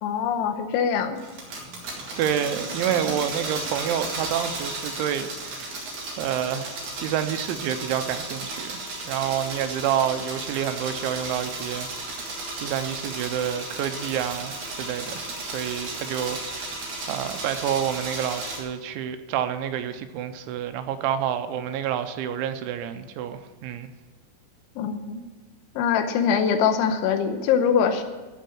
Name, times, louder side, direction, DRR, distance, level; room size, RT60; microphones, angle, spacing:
voice 1, 0.0-1.2 24.8-25.2 25.8-28.0, left 7 dB, 80° left, 8 dB, 3.3 m, -23 dB
sound 1, 1.2-18.6, right 2 dB, 50° right, 2.7 m, -34 dB
voice 2, 2.2-5.9 6.2-16.7 17.1-23.9, right 9 dB, 90° right, 9 dB, 3.1 m, -28 dB
14.5 x 5.4 x 8.8 m, 1.3 s
omnidirectional pair, 5.4 m